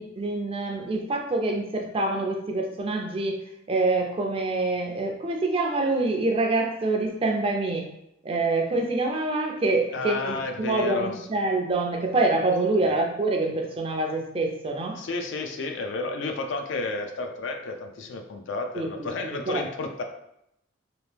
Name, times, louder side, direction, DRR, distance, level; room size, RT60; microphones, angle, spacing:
voice 1, 0.0-3.4 3.7-7.9 8.2-15.0 18.8-19.6, right 2 dB, 30° right, 2 dB, 0.4 m, -26 dB
voice 2, 9.9-11.1 12.8-13.0 14.9-20.0, left 3 dB, 65° left, 4 dB, 0.4 m, -31 dB
2.9 x 2.5 x 3.3 m, 0.80 s
head